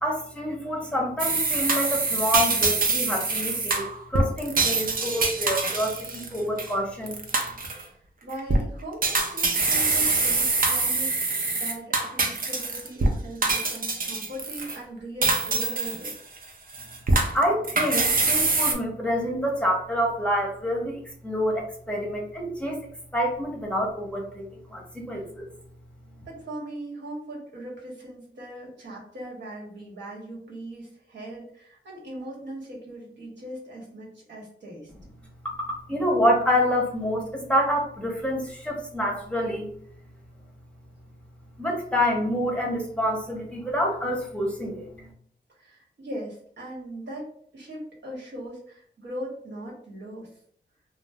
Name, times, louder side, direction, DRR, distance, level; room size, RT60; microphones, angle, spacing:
voice 1, 0.0-7.2 17.3-22.9 23.1-24.4 24.7-25.5 35.4-39.7 41.6-45.0, equal, 5° left, -2 dB, 0.8 m, -27 dB
sound 1, 1.2-6.7 7.1-7.8 8.3-8.6 9.0-13.1 13.4-14.8 15.2-16.4 16.7-18.7, right 3 dB, 50° right, 0.6 m, -24 dB
voice 2, 8.2-16.2 26.2-34.9 45.5-50.3, right 1 dB, 75° right, -4 dB, 1.1 m, -39 dB
2.5 x 2.0 x 3.3 m, 0.63 s
cardioid pair, 65°, 18 cm